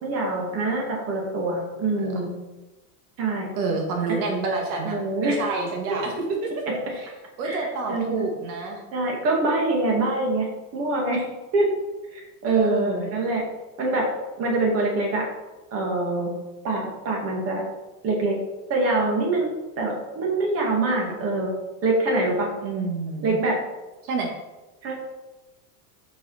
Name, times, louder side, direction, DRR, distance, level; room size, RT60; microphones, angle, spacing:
voice 1, 0.0-2.3 3.2-3.5 4.8-5.4 6.0-6.1 6.7-6.8 7.4-8.3 8.9-10.5 10.7-11.7 12.1-13.4 13.8-14.1 14.4-15.2 15.7-16.3 16.6-17.6 18.0-18.4 18.7-19.5 19.8-21.5 21.8-22.5 23.2-23.6 24.8-25.0, right 2 dB, 30° right, -1 dB, 2.1 m, -24 dB
voice 2, 3.6-6.1 6.9-7.1 7.4-8.8 12.5-13.1 22.6-23.4 24.0-24.3, right 3 dB, 70° right, 1 dB, 1.7 m, -28 dB
7.2 x 6.1 x 4.2 m, 1.1 s
supercardioid pair, 150°, 47 cm